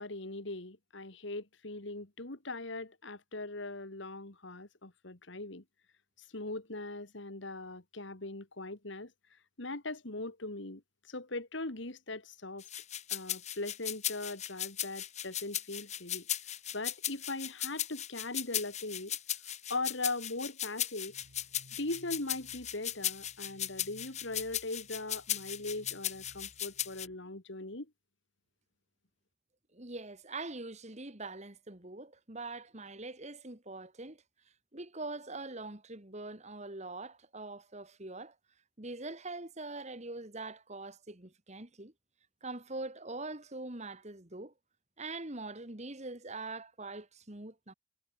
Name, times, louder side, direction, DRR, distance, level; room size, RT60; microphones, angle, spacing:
voice 1, 0.0-5.6 6.3-9.1 9.6-12.7 13.1-16.3 16.7-19.2 19.7-21.1 21.8-27.9, left 2 dB, 60° left, 2.2 m, -40 dB
sound 1, 12.6-27.1, left 11 dB, 35° left, 1.6 m, -37 dB
sound 2, 21.1-27.2, equal, 75° right, 5.1 m, -61 dB
voice 2, 29.7-34.2 34.7-38.4 38.8-41.9 42.4-44.5 45.0-47.7, right 2 dB, 35° right, 2.2 m, -43 dB
head